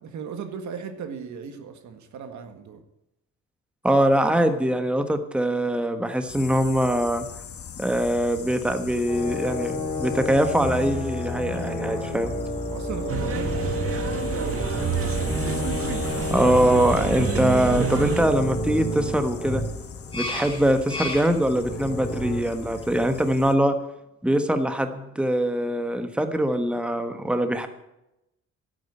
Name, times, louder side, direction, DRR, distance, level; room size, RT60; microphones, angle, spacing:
voice 1, 0.0-2.8 11.9-15.4, right 6 dB, 70° right, 7 dB, 1.8 m, -38 dB
voice 2, 3.8-7.3 7.8-12.3 16.3-19.6 20.1-23.8 24.2-27.7, right 1 dB, 5° right, 8 dB, 1.3 m, -23 dB
sound 1, 6.3-23.5, left 7 dB, 50° left, 1.4 m, -40 dB
sound 2, 9.1-22.4, left 1 dB, 15° left, 4.6 m, -30 dB
sound 3, 13.1-18.2, right 6 dB, 50° right, 1.8 m, -28 dB
11.5 x 8.8 x 8.7 m, 0.88 s
cardioid pair, 95°, 30 cm